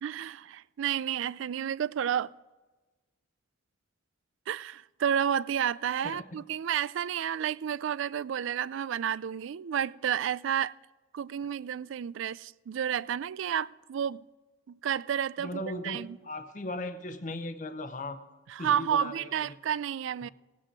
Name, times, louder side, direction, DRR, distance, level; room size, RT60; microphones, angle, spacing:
voice 1, 0.0-2.3 4.5-10.8 11.1-14.2 14.7-16.2 18.5-20.3, right 9 dB, 65° right, 0.3 m, -31 dB
voice 2, 15.4-18.2 18.6-19.5 20.2-20.3, left 1 dB, 35° left, 0.7 m, -38 dB
17.0 x 9.0 x 4.6 m
head